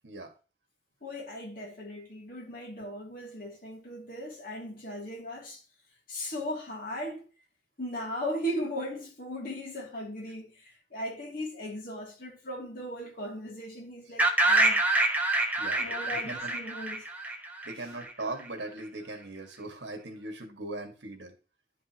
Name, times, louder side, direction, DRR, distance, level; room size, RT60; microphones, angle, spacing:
voice 1, 1.0-5.6 6.1-7.2 7.8-14.8 15.8-17.0, equal, 55° left, 2.7 m, -37 dB
sound 1, 14.2-18.1, right 2 dB, 10° right, 0.9 m, -26 dB
voice 2, 15.6-16.5 17.6-21.3, right 2 dB, 80° right, 1.9 m, -39 dB
11.0 x 5.3 x 3.0 m
head